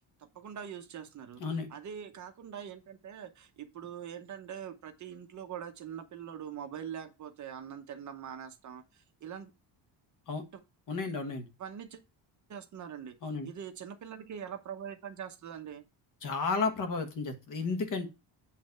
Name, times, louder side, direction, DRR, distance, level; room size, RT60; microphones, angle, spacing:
voice 1, 0.2-1.4 1.7-9.5 10.5-10.6 11.6-12.0 12.5-13.1 13.4-15.8, right 8 dB, 40° right, 0.9 m, -43 dB
voice 2, 10.9-11.5 13.2-13.5 16.2-18.1, left 4 dB, 45° left, 1.5 m, -32 dB
8.5 x 3.2 x 6.5 m
cardioid pair, 165°, 43 cm